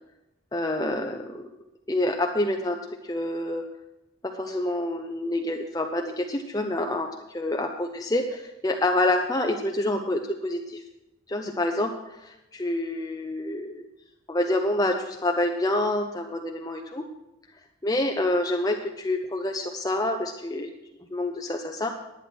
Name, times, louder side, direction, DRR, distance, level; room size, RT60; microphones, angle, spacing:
voice 1, 0.5-1.5 1.9-2.8 3.0-3.6 4.3-10.8 11.3-13.9 14.3-17.0 17.8-20.7 21.1-22.0, left 1 dB, 20° left, 3 dB, 0.6 m, -27 dB
11.0 x 9.3 x 6.2 m, 0.94 s
head